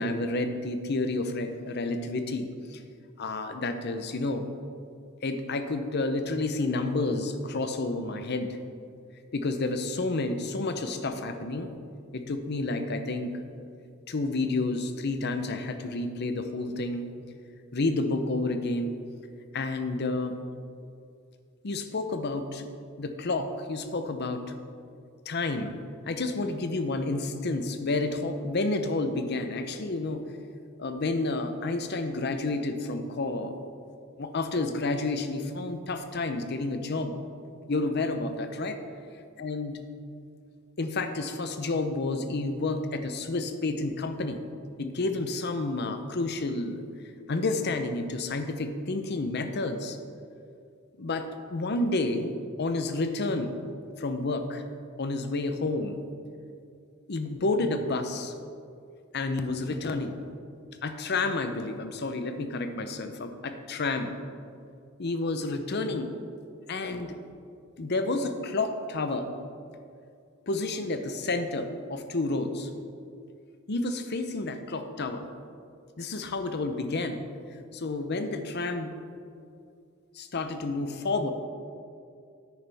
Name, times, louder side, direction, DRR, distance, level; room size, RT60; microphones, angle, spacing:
voice 1, 0.0-2.8 3.2-4.5 5.2-8.6 9.3-11.7 12.1-13.4 14.1-17.1 17.7-19.0 19.5-20.4 21.6-22.7 23.0-24.4 25.3-25.8 26.1-30.2 30.8-33.7 34.2-37.2 37.7-38.8 39.4-39.7 40.8-44.4 44.8-46.8 47.3-50.0 51.0-52.3 52.6-53.5 54.0-54.6 55.0-56.0 57.1-58.3 59.1-60.2 60.8-64.2 65.0-66.1 66.7-67.2 67.8-69.3 70.5-72.7 73.7-75.3 76.0-77.2 77.7-78.9 80.1-81.3, left 2 dB, 55° left, 8 dB, 0.7 m, -30 dB
9.9 x 9.2 x 3.5 m, 2.4 s
head